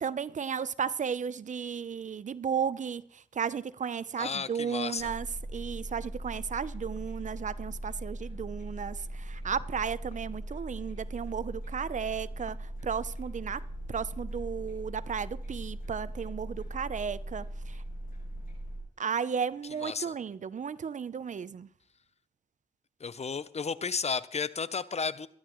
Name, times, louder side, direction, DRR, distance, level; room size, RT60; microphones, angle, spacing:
voice 1, 0.0-5.3 5.5-17.8 19.0-21.7, right 7 dB, 55° right, 0.6 m, -34 dB
voice 2, 4.2-5.1 19.8-20.1 23.0-25.3, left 5 dB, 45° left, 0.7 m, -33 dB
sound 1, 5.0-18.8, right 1 dB, 85° left, 7.9 m, -40 dB
23.5 x 11.0 x 3.1 m
cardioid pair, 50°, 15 cm